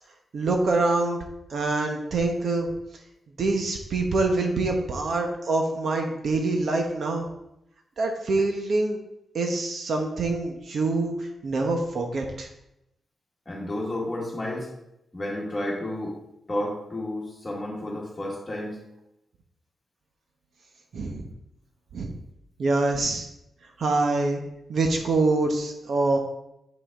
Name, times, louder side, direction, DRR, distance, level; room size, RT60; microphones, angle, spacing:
voice 1, 0.3-1.2 1.5-2.7 3.4-7.3 8.0-9.0 9.3-11.1 11.4-12.5 20.9-21.2 21.9-22.1 22.6-23.3 23.8-24.4 24.7-26.2, right 3 dB, 55° right, 3 dB, 1.1 m, -25 dB
voice 2, 13.5-14.7 15.1-16.2 16.5-18.8, left 1 dB, 20° left, -3 dB, 1.9 m, -31 dB
8.4 x 5.7 x 3.7 m, 0.85 s
wide cardioid pair, 155°, 0 cm